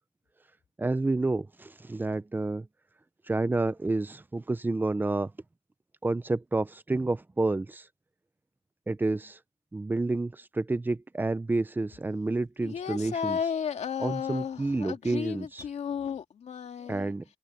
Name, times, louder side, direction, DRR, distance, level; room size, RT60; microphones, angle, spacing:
voice 1, 0.8-2.7 3.3-5.3 6.0-7.9 8.9-9.4 9.7-13.4 14.0-15.6 16.9-17.2, right 2 dB, 15° right, 0.8 m, -29 dB
voice 2, 12.6-17.1, left 7 dB, 55° left, 2.4 m, -33 dB
cardioid pair, 115°, 14 cm